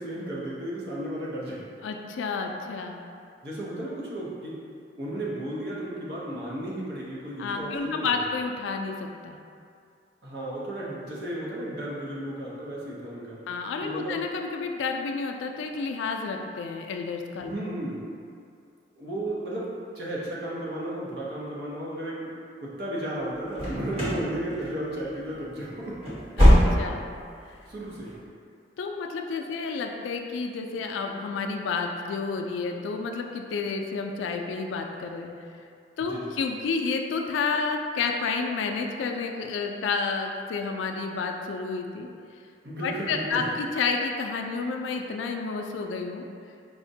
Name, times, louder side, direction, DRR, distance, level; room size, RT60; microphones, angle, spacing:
voice 1, 0.0-1.6 3.4-4.6 5.0-8.2 10.2-13.4 13.8-14.2 17.5-18.0 19.0-19.7 19.9-22.3 22.6-26.0 27.7-28.1 36.0-36.4 42.6-43.4, right 1 dB, 60° right, -6 dB, 0.7 m, -34 dB
voice 2, 1.8-3.0 7.4-9.4 13.5-17.6 26.4-27.1 28.8-35.3 36.0-42.1 42.8-46.2, left 4 dB, 85° left, 3 dB, 0.3 m, -30 dB
sound 1, 23.5-24.3 24.5-25.0 25.3-25.4 25.9-27.1 27.4-27.5 28.0-28.2, equal, 30° right, 1.0 m, -20 dB
4.7 x 2.1 x 2.7 m, 2.4 s
head